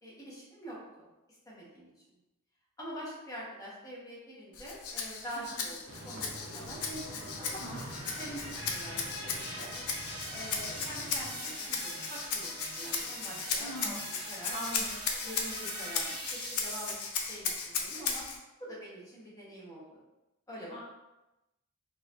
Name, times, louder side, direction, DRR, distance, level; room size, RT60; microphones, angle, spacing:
voice 1, 0.0-1.1 1.4-2.2 2.8-7.5 8.2-9.7 10.3-14.6 15.2-17.0 17.3-18.2 18.6-20.0 20.5-20.8, equal, 15° left, -6 dB, 1.1 m, -45 dB
Rattle (instrument), 4.5-18.4, left 5 dB, 80° left, 0.5 m, -37 dB
sound 1, 5.9-11.3, right 1 dB, 65° right, 0.6 m, -46 dB
sound 2, 6.2-17.3, right 1 dB, 20° right, 1.2 m, -43 dB
voice 2, 13.6-14.0 14.5-15.0 20.7-20.8, equal, 30° left, -6 dB, 0.5 m, -40 dB
4.0 x 2.8 x 2.5 m, 0.99 s
head